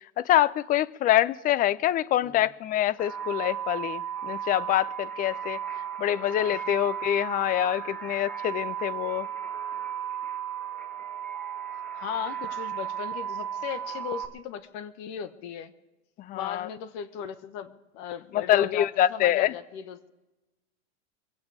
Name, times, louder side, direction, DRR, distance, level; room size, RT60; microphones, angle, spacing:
voice 1, 0.2-5.6 6.0-9.3 16.2-16.7 18.3-19.5, left 12 dB, 25° left, 21 dB, 0.4 m, -25 dB
sound 1, 3.0-14.3, right 9 dB, 5° left, 1.8 m, -35 dB
voice 2, 11.9-15.7 16.3-20.1, left 9 dB, 50° left, 14 dB, 1.2 m, -37 dB
24.5 x 8.6 x 4.9 m, 1.0 s
hypercardioid pair, 115°, 35 cm